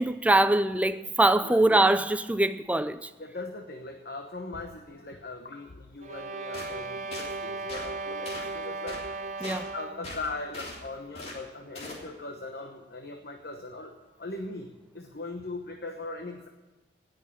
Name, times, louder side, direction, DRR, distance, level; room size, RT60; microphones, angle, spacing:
voice 1, 0.0-3.1 9.4-9.7, right 1 dB, 10° right, 0.5 m, -23 dB
voice 2, 3.2-16.5, left 2 dB, 60° left, 1.1 m, -40 dB
sound 1, 6.0-10.2, right 3 dB, 45° right, 0.8 m, -36 dB
sound 2, 6.5-6.7 7.1-7.3 7.7-7.9 8.2-8.5 8.9-9.0 9.4-9.6 10.0-10.8 11.1-11.4 11.7-12.0, left 2 dB, 35° left, 3.3 m, -40 dB
18.0 x 6.4 x 8.7 m
head